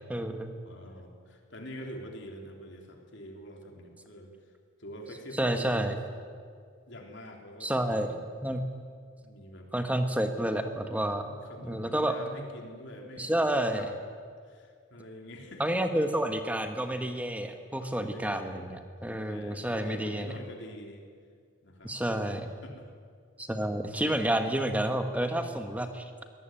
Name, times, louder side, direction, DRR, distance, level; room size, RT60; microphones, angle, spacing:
voice 1, 0.1-0.5 5.4-5.9 7.6-8.1 8.4-8.6 9.7-11.2 11.6-12.1 13.2-13.8 15.6-20.3 21.8-22.5 23.4-26.1, right 1 dB, 5° right, 6 dB, 1.5 m, -29 dB
voice 2, 0.6-4.3 4.8-5.9 6.9-8.2 9.1-10.3 11.1-13.9 14.5-15.7 17.9-18.7 19.3-21.0 21.6-22.0 22.6-22.9 25.7-25.8, equal, 55° left, 2 dB, 3.5 m, -45 dB
23.0 x 19.0 x 9.1 m, 2.1 s
head